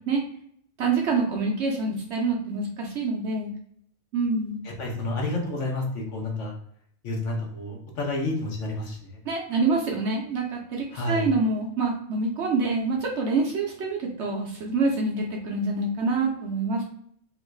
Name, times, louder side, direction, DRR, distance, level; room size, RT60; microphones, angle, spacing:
voice 1, 0.8-3.5 4.1-4.6 9.3-16.8, right 3 dB, 60° right, -1 dB, 0.8 m, -26 dB
voice 2, 4.6-6.5 7.0-9.2 10.9-11.3, left 2 dB, 60° left, -1 dB, 1.1 m, -30 dB
3.0 x 2.5 x 3.1 m, 0.66 s
omnidirectional pair, 1.5 m